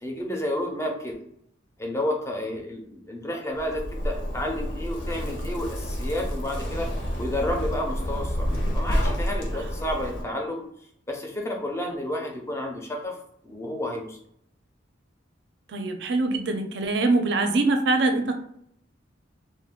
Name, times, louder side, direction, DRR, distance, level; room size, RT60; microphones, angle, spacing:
voice 1, 0.0-1.2 1.8-6.9 7.2-10.6 11.1-13.2 13.4-14.2, left 1 dB, 15° left, 1 dB, 0.5 m, -31 dB
Zipper (clothing), 3.6-10.2, equal, 80° left, 1.0 m, -29 dB
voice 2, 15.7-18.3, right 2 dB, 60° right, 6 dB, 0.4 m, -23 dB
2.5 x 2.3 x 3.5 m, 0.70 s
head